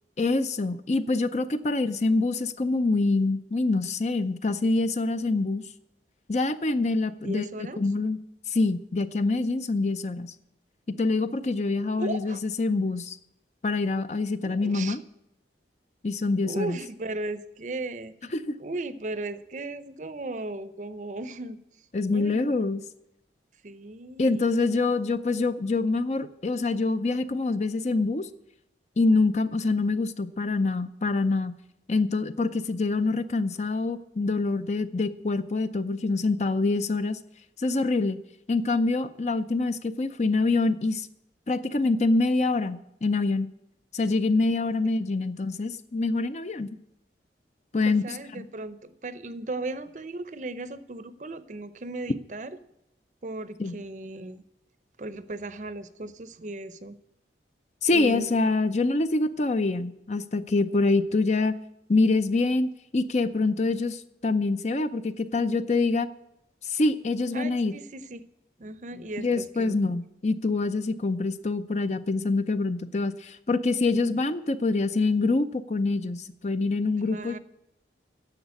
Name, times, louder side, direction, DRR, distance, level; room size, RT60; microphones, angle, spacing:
voice 1, 0.2-5.6 6.3-7.5 7.8-8.2 8.5-10.3 11.0-13.2 13.6-15.0 16.0-16.8 18.3-18.5 21.9-22.8 24.2-28.3 29.0-31.5 31.9-37.2 37.6-38.2 38.5-41.1 41.5-43.5 43.9-46.8 47.7-48.5 53.6-53.7 57.8-61.5 61.9-66.1 66.7-67.7 69.2-77.4, left 3 dB, 40° left, 12 dB, 0.5 m, -25 dB
voice 2, 7.2-7.8 12.0-12.4 14.4-15.0 16.4-18.1 18.6-21.6 22.1-22.5 23.6-24.6 47.9-52.6 53.2-54.4 55.0-57.0 57.9-58.4 67.3-68.2 68.6-69.8 77.1-77.4, right 2 dB, 45° right, 13 dB, 0.6 m, -36 dB
10.5 x 7.1 x 8.3 m, 0.83 s
head